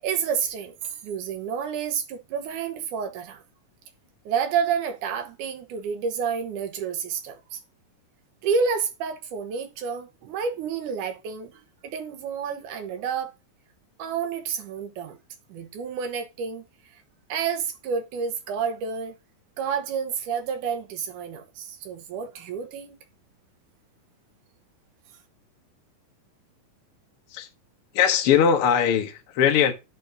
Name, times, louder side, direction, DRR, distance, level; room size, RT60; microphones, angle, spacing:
voice 1, 0.0-3.4 4.3-7.6 8.4-13.3 14.0-15.2 15.5-16.6 17.3-19.2 19.6-23.0, right 6 dB, 70° right, 2.6 m, -29 dB
voice 2, 27.9-29.7, left 8 dB, 60° left, 1.5 m, -20 dB
10.5 x 4.2 x 5.2 m
omnidirectional pair, 4.0 m